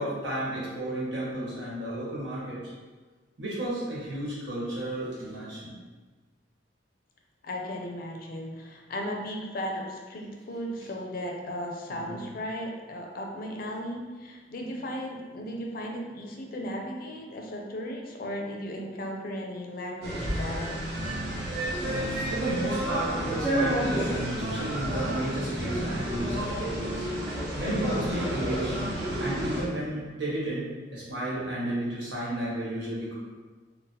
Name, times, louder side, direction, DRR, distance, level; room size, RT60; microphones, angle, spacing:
voice 1, 0.0-2.6 3.4-5.8 11.9-12.2 21.7-21.8 22.2-28.8 29.2-33.1, right 1 dB, 85° right, -7 dB, 1.2 m, -32 dB
voice 2, 7.4-21.1, equal, 55° left, 1 dB, 0.4 m, -36 dB
sound 1, 20.0-29.6, right 1 dB, 60° right, 0.9 m, -30 dB
3.8 x 2.1 x 2.7 m, 1.3 s
head